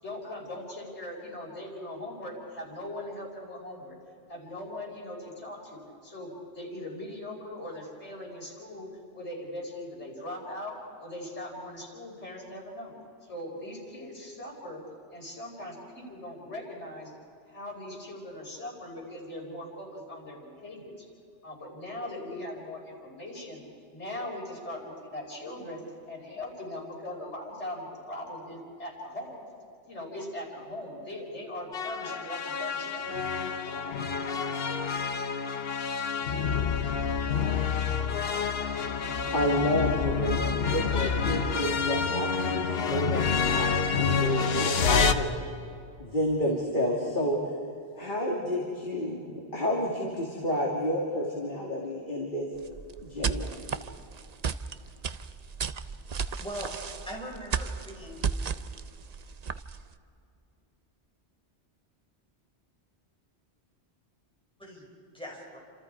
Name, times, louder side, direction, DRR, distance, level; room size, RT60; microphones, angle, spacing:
voice 1, 0.0-4.0 4.3-12.9 13.2-14.8 15.1-17.1 17.5-21.1 21.4-29.4 29.8-33.1, left 1 dB, 90° left, -2 dB, 5.4 m, -40 dB
sound 1, 31.7-45.1, left 6 dB, 60° left, 1.2 m, -28 dB
voice 2, 39.3-45.3 46.0-47.4 47.9-52.5 53.0-53.5, equal, 45° left, -2 dB, 2.9 m, -30 dB
sound 2, 52.6-59.9, right 6 dB, 45° right, 0.7 m, -34 dB
voice 3, 56.4-56.7 57.1-58.5 64.6-64.9 65.1-65.6, equal, 5° left, -3 dB, 5.8 m, -41 dB
29.5 x 27.0 x 4.8 m, 2.5 s
omnidirectional pair, 1.1 m